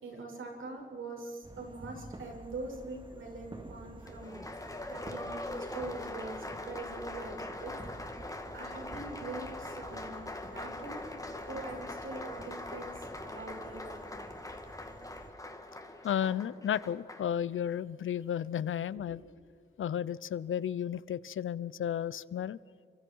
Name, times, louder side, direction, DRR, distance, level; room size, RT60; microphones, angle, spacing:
voice 1, 0.0-4.4 4.9-7.7 8.5-11.0 11.4-14.1 19.0-19.2, right 2 dB, 80° right, 1 dB, 6.2 m, -43 dB
sound 1, 1.4-15.3, right 1 dB, 25° right, 2.5 m, -50 dB
Applause, 4.1-17.3, left 1 dB, 15° left, 2.3 m, -42 dB
voice 2, 16.0-19.2 19.8-22.6, left 9 dB, 90° left, 19 dB, 0.7 m, -33 dB
29.5 x 25.0 x 4.7 m, 2.2 s
wide cardioid pair, 110°, 20 cm